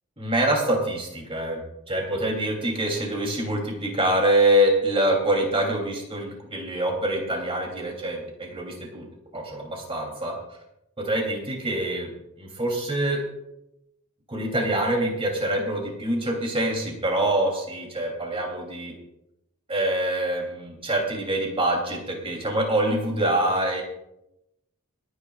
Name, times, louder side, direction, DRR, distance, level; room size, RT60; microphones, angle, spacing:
voice 1, 0.2-1.6 1.9-9.0 9.3-10.4 11.0-12.1 12.4-13.2 14.3-18.9 19.7-23.8, right 1 dB, 25° right, 1 dB, 3.0 m, -25 dB
28.0 x 9.7 x 2.4 m, 0.86 s
head